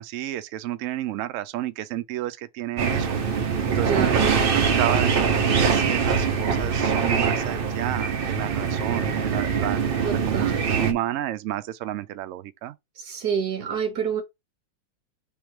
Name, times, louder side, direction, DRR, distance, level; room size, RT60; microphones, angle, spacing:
voice 1, 0.0-4.4 4.8-9.8 10.3-12.7, right 13 dB, 85° right, 0.6 m, -31 dB
sound 1, 2.8-10.9, right 6 dB, 50° right, 0.7 m, -23 dB
voice 2, 3.8-4.3 10.0-10.7 13.0-14.2, right 7 dB, 65° right, 1.6 m, -28 dB
3.5 x 3.1 x 4.7 m
omnidirectional pair, 1.9 m